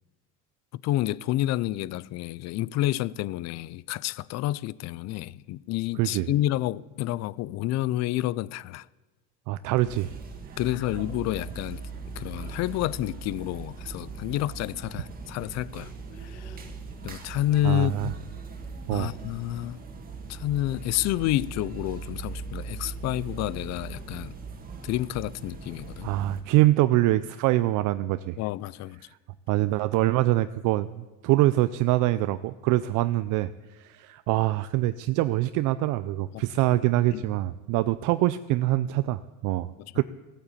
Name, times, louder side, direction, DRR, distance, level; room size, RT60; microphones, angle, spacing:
voice 1, 0.7-8.9 10.6-11.8 12.2-15.9 16.2-16.6 17.0-18.1 18.9-19.8 20.3-24.3 24.8-26.1 28.4-29.0 36.3-36.4 36.7-36.8 37.1-37.2 39.8-40.0, left 15 dB, 50° left, 0.5 m, -29 dB
voice 2, 9.5-10.1 10.5-10.6 17.6-18.1 18.9-19.1 26.0-28.4 29.5-40.0, right 16 dB, 60° right, 0.5 m, -24 dB
sound 1, 9.9-26.4, right 4 dB, 25° right, 1.9 m, -40 dB
15.5 x 8.9 x 8.4 m
cardioid pair, 130°, 34 cm